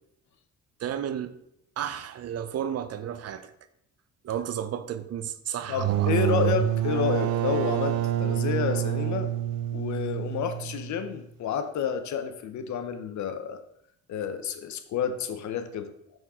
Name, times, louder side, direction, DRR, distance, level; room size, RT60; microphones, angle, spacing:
voice 1, 0.8-1.4 1.8-3.5 4.2-6.1, right 9 dB, 55° right, 0.6 m, -33 dB
voice 2, 5.7-9.3 9.7-13.6 14.1-15.9, left 7 dB, 70° left, 0.8 m, -30 dB
sound 1, 5.7-11.2, right 12 dB, 90° right, 0.7 m, -27 dB
6.4 x 6.2 x 3.6 m
cardioid pair, 90°, 30 cm